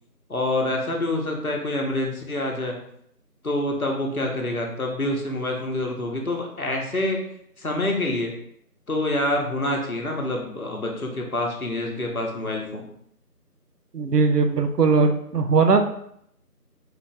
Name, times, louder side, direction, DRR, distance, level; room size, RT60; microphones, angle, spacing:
voice 1, 0.3-2.8 3.4-7.2 7.6-8.3 8.9-12.8, left 1 dB, 65° left, 1 dB, 1.0 m, -26 dB
voice 2, 13.9-15.8, right 4 dB, 90° right, 6 dB, 0.7 m, -19 dB
3.9 x 2.8 x 3.4 m, 0.70 s
figure-of-eight pair, 180°, 47 cm